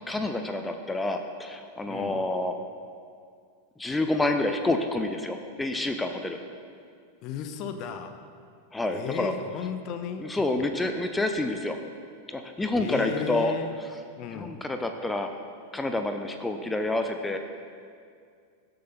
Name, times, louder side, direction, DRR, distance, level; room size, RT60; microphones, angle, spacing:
voice 1, 0.1-2.6 3.8-6.4 8.7-9.3 10.2-11.8 12.3-13.5 14.3-15.3 15.7-17.4, left 2 dB, 10° left, 6 dB, 0.8 m, -28 dB
voice 2, 1.9-2.2 7.2-8.2 8.9-10.3 10.6-10.7 12.8-13.7 14.2-14.6, left 8 dB, 40° left, 8 dB, 1.0 m, -35 dB
19.0 x 8.0 x 5.5 m, 2.2 s
figure-of-eight pair, 90°, 0 cm